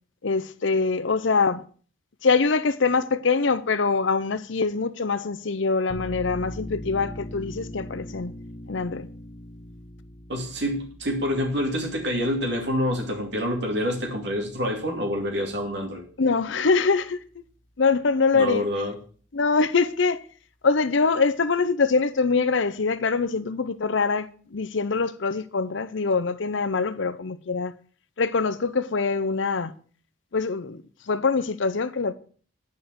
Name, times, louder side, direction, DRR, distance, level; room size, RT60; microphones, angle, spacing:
voice 1, 0.2-1.6 2.2-8.3 8.7-9.1 16.2-17.2 17.8-18.6 19.3-20.2 20.6-27.7 28.2-29.7 30.3-30.8 31.1-32.1, left 4 dB, 65° left, 0.7 m, -24 dB
sound 1, 5.9-17.2, left 1 dB, 30° left, 1.3 m, -42 dB
voice 2, 10.3-16.0 18.3-19.0, equal, 55° right, 2.6 m, -27 dB
10.0 x 5.4 x 8.0 m
head